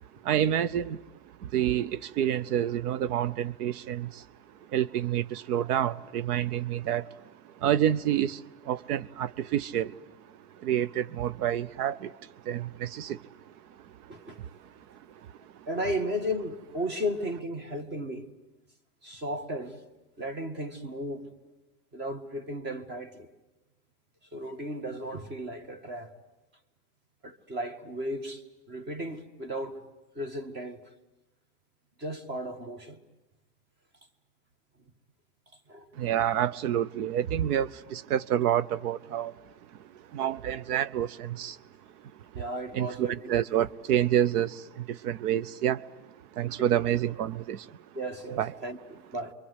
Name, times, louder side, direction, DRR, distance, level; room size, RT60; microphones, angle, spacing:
voice 1, 0.2-4.3 4.7-15.7 35.9-41.6 42.0-42.4 42.7-45.9 46.3-47.8 48.4-48.5, right 10 dB, 85° right, 0.9 m, -29 dB
voice 2, 15.7-18.3 19.0-19.8 20.2-21.5 21.9-23.3 24.3-26.1 27.2-29.8 30.2-30.8 32.0-33.0 35.7-35.9 42.3-43.3 46.6-46.9 47.9-49.3, equal, 25° right, 1.8 m, -35 dB
29.5 x 24.5 x 8.2 m
supercardioid pair, 160°, 44 cm